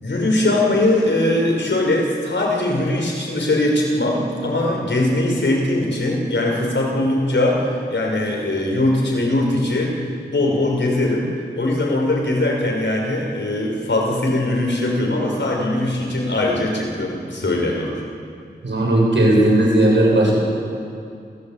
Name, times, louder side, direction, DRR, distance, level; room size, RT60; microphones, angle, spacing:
voice 1, 0.0-10.0 10.3-11.3 11.6-17.9, left 1 dB, 80° left, -1 dB, 5.9 m, -20 dB
voice 2, 18.6-20.4, right 1 dB, 80° right, -2 dB, 7.8 m, -16 dB
28.0 x 17.0 x 8.7 m, 2.4 s
wide cardioid pair, 65°, 19 cm